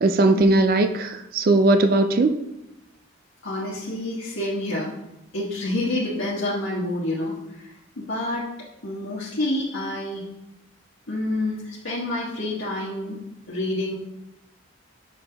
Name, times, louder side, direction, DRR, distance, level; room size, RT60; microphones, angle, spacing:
voice 1, 0.0-2.3, right 2 dB, 45° right, 8 dB, 0.4 m, -19 dB
voice 2, 3.4-4.9 5.3-8.5 8.8-10.2 11.1-13.2 13.5-14.0, left 1 dB, 85° left, -6 dB, 1.3 m, -28 dB
6.0 x 5.3 x 3.4 m, 0.88 s
head